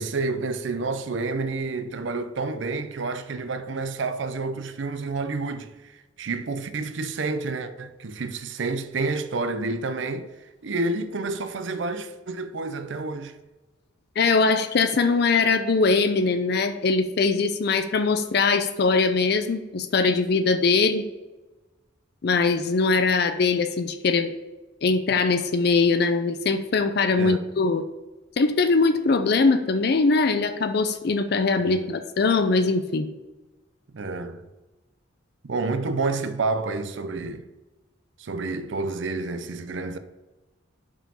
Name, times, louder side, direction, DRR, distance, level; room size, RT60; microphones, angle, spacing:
voice 1, 0.0-10.3 10.6-13.3 27.2-27.4 31.6-31.8 33.9-34.5 35.4-37.5 38.2-40.0, right 3 dB, 65° right, 0.5 m, -29 dB
voice 2, 14.2-21.0 22.2-24.3 24.8-27.8 28.4-33.1, left 4 dB, 55° left, 0.4 m, -21 dB
5.6 x 5.0 x 5.4 m
head